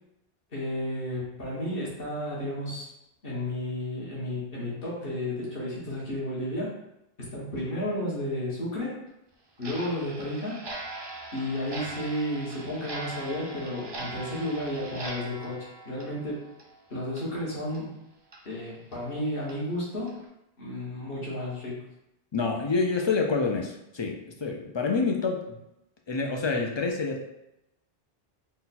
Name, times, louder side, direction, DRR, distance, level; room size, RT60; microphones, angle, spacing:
voice 1, 0.5-2.9 3.2-6.7 7.2-9.0 9.6-10.7 11.3-16.4 16.9-18.0 18.4-20.2 20.6-21.8, left 1 dB, 65° left, -6 dB, 1.5 m, -32 dB
Clock, 9.6-16.8 17.1-17.2 17.7-17.8 18.3-18.4 18.9-19.0 19.5-19.6 20.1-20.2, right 2 dB, 35° right, 0.4 m, -40 dB
voice 2, 22.3-25.6 26.1-27.2, left 4 dB, 45° left, 1 dB, 0.3 m, -27 dB
4.0 x 2.3 x 4.1 m, 0.87 s
omnidirectional pair, 1.0 m